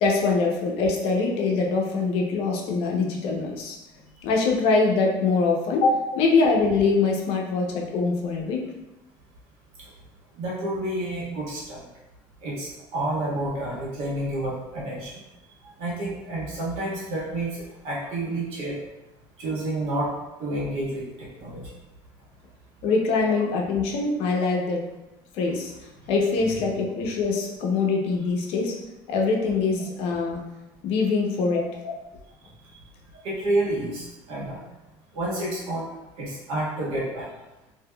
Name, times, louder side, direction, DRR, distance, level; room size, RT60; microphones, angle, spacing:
voice 1, 0.0-3.8 4.2-8.6 22.8-24.8 25.3-25.7 26.1-28.8 29.1-30.4 30.8-31.9, left 4 dB, 65° left, 0 dB, 0.6 m, -23 dB
voice 2, 10.4-11.8 12.4-15.1 15.8-17.6 17.8-18.8 19.4-20.1 20.4-21.6 31.5-31.6 33.2-34.6 35.1-35.9 36.2-37.3, right 1 dB, 65° right, -6 dB, 1.4 m, -29 dB
3.4 x 2.7 x 2.2 m, 0.99 s
supercardioid pair, 115°, 11 cm